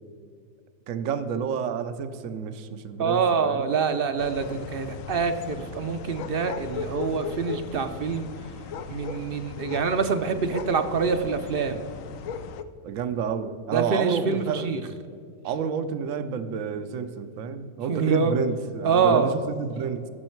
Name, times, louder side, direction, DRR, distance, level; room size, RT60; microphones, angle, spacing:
voice 1, 0.9-3.7 12.8-14.7 15.4-20.1, right 6 dB, 75° right, 10 dB, 1.1 m, -29 dB
voice 2, 3.0-8.3 8.9-11.8 13.7-14.8 17.9-18.3 18.8-19.3, right 5 dB, 55° right, 9 dB, 0.7 m, -25 dB
sound 1, 4.2-12.6, left 6 dB, 75° left, 1.0 m, -38 dB
16.0 x 6.3 x 4.5 m, 2.3 s
omnidirectional pair, 1.4 m